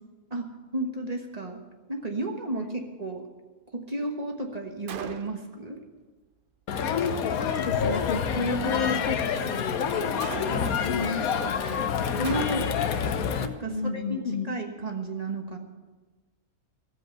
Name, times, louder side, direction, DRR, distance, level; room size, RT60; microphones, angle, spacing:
voice 1, 0.3-1.6 1.9-3.3 3.7-5.8 12.2-12.7 13.4-15.6, right 1 dB, 25° right, 3 dB, 1.3 m, -33 dB
Gunshot gunfire, 4.9-5.6 10.2-10.9 12.2-12.9, right 7 dB, 65° right, 0.5 m, -39 dB
Crowd, 6.7-13.5, left 6 dB, 70° left, 1.2 m, -27 dB
voice 2, 7.4-9.2 9.4-9.8 10.5-11.8 13.7-14.5, left 4 dB, 55° left, 7 dB, 0.6 m, -32 dB
14.0 x 7.9 x 7.9 m, 1.3 s
omnidirectional pair, 1.6 m